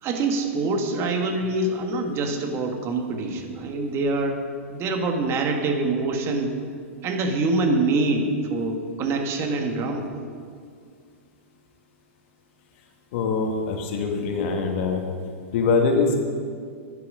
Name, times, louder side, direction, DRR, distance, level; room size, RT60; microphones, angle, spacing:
voice 1, 0.0-4.4 4.7-6.5 7.0-10.1, right 3 dB, 35° right, 4 dB, 1.8 m, -25 dB
voice 2, 13.1-15.1 15.5-16.2, left 4 dB, 55° left, 2 dB, 1.9 m, -23 dB
11.5 x 10.5 x 5.1 m, 2.1 s
hypercardioid pair, 115°, 7 cm